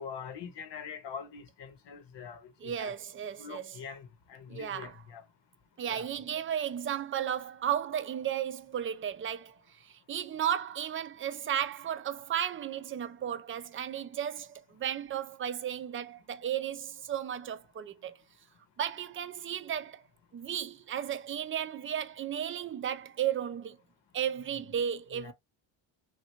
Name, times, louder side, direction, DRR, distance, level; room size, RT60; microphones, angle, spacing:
voice 1, 0.0-2.9 3.4-5.2 5.9-6.1 25.1-25.3, left 6 dB, 60° left, 0.9 m, -44 dB
voice 2, 2.6-3.8 4.5-5.0 5.8-18.2 18.8-20.0 20.3-23.8 24.1-25.3, right 9 dB, 30° right, 0.3 m, -34 dB
3.3 x 2.5 x 2.9 m
cardioid pair, 95°, 48 cm